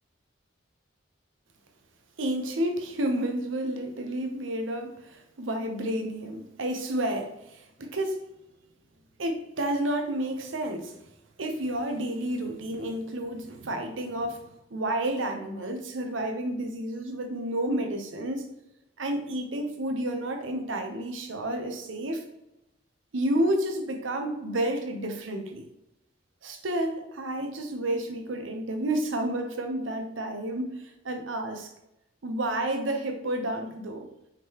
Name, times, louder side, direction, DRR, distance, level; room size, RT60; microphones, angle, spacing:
voice 1, 2.2-8.2 9.2-10.9 11.4-18.5 19.0-22.2 23.1-25.6 26.4-31.7 32.2-34.1, right 1 dB, 80° right, 5 dB, 0.7 m, -30 dB
4.9 x 3.8 x 2.9 m, 0.89 s
head